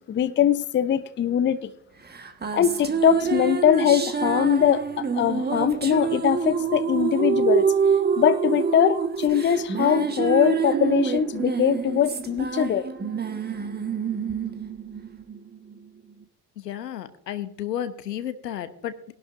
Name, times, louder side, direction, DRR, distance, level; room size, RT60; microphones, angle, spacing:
voice 1, 0.1-1.7 2.5-7.7 8.2-12.9, left 9 dB, 25° left, 0.7 m, -22 dB
sound 1, 2.1-15.8, right 6 dB, 20° right, 1.3 m, -26 dB
voice 2, 16.6-19.1, left 10 dB, 80° left, 1.1 m, -32 dB
19.5 x 11.5 x 2.5 m
figure-of-eight pair, 55°, 49 cm